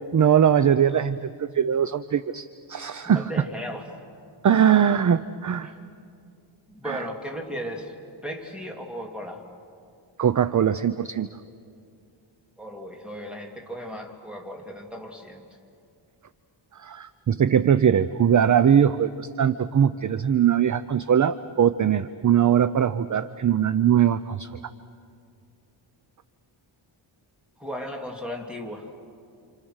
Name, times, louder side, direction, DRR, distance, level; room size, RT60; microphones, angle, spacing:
voice 1, 0.1-3.2 4.4-5.7 6.9-7.0 10.2-11.3 16.8-24.5, right 8 dB, 40° right, 14 dB, 0.5 m, -21 dB
voice 2, 3.0-3.9 5.6-5.8 6.7-7.9 8.2-9.4 12.6-15.4 27.6-28.9, equal, ahead, 1 dB, 2.7 m, -36 dB
29.0 x 27.0 x 6.4 m, 2.4 s
wide cardioid pair, 120°, 49 cm